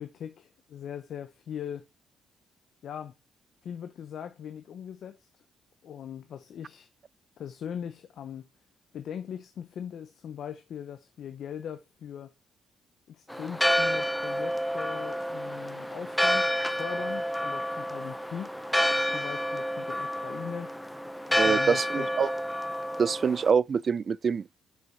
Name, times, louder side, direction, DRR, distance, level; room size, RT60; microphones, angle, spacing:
voice 1, 0.0-1.9 2.8-3.1 3.6-5.4 5.8-6.9 7.4-8.5 8.9-12.3 13.1-18.6 19.1-20.7 21.3-22.1, left 8 dB, 65° left, 0.8 m, -40 dB
Church bell, 13.3-23.5, equal, 5° left, 0.6 m, -29 dB
voice 2, 21.4-22.3 23.0-24.6, right 6 dB, 45° right, 0.3 m, -25 dB
7.4 x 6.2 x 4.2 m
cardioid pair, 90°, 0 cm